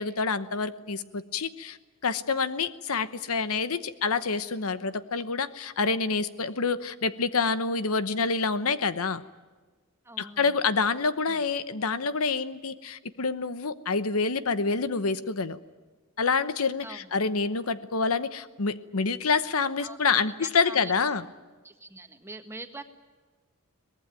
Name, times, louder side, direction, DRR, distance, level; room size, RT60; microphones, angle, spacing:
voice 1, 0.0-9.2 10.2-15.6 16.2-21.2, left 4 dB, 80° left, 14 dB, 1.0 m, -27 dB
voice 2, 10.1-10.6 11.3-11.4 16.8-17.1 19.8-20.9 21.6-22.8, right 2 dB, 10° right, 7 dB, 1.6 m, -43 dB
23.5 x 19.0 x 9.1 m, 1.3 s
head